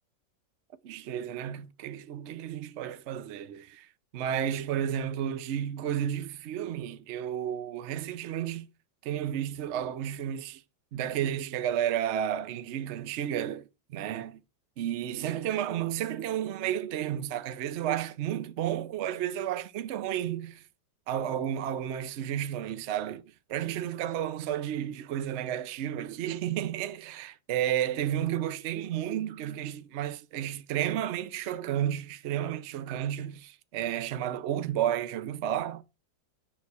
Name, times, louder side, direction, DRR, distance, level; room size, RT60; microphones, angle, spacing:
voice 1, 0.8-3.9 4.1-8.7 9.0-10.6 10.9-14.4 14.8-20.6 21.1-23.2 23.5-35.8, right 10 dB, 75° right, 0.6 m, -32 dB
9.5 x 3.4 x 4.6 m
omnidirectional pair, 2.0 m